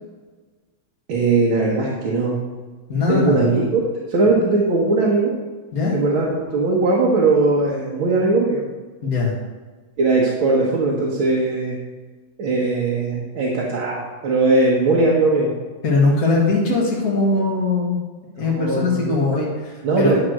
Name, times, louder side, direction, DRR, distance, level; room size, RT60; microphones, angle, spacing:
voice 1, 1.1-2.4 3.1-3.8 4.1-5.3 5.9-8.6 10.0-11.8 12.4-15.5 18.5-19.2 19.8-20.2, right 3 dB, 75° right, -4 dB, 2.1 m, -19 dB
voice 2, 2.9-3.4 5.7-6.0 9.0-9.3 15.8-18.0 18.4-20.1, left 3 dB, 45° left, -5 dB, 2.2 m, -20 dB
11.0 x 4.4 x 6.4 m, 1.3 s
omnidirectional pair, 2.3 m